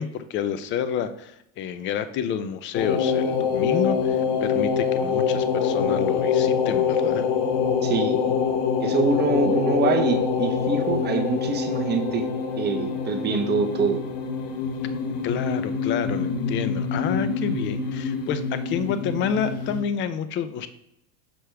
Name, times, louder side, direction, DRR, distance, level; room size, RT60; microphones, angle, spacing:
voice 1, 0.0-7.3 15.2-20.7, left 8 dB, 30° left, 11 dB, 0.4 m, -29 dB
sound 1, 2.7-19.8, left 6 dB, 50° left, 1.0 m, -25 dB
voice 2, 7.8-8.2 8.8-12.3 12.6-14.0, right 4 dB, 25° right, 6 dB, 0.8 m, -24 dB
5.9 x 4.9 x 3.4 m, 0.80 s
supercardioid pair, 115°, 45 cm